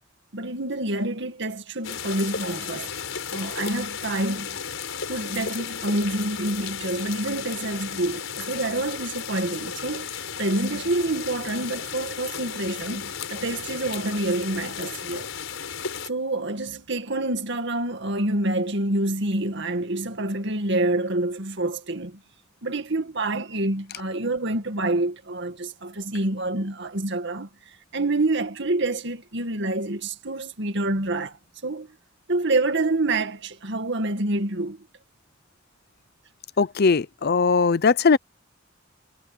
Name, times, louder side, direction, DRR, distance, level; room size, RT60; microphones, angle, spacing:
voice 1, 0.3-2.9 3.3-4.5 5.1-15.3 16.1-22.2 22.6-27.5 27.9-31.4 31.6-31.9 32.3-34.9, right 2 dB, 65° right, 2.1 m, -27 dB
sound 1, 1.8-16.1, left 6 dB, 85° left, 4.6 m, -34 dB
voice 2, 36.6-38.2, left 4 dB, 55° left, 0.6 m, -19 dB
head